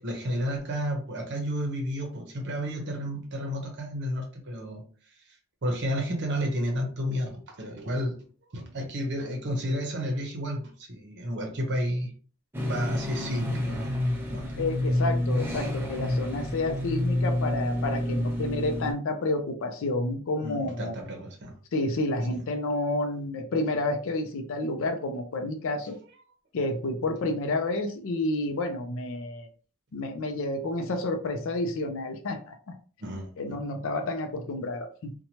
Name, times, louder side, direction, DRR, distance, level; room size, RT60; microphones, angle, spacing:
voice 1, 0.0-4.8 5.1-8.2 8.5-12.1 12.7-13.9 14.3-14.5 20.4-21.6 22.3-22.4 33.0-33.3, equal, 50° right, 2 dB, 0.8 m, -31 dB
sound 1, 12.5-18.9, left 1 dB, 10° right, 0.5 m, -29 dB
voice 2, 14.6-20.9 21.7-26.0 26.5-29.5 29.9-32.5 33.4-35.1, left 2 dB, 60° left, 5 dB, 0.4 m, -30 dB
2.8 x 2.2 x 2.8 m, 0.41 s
head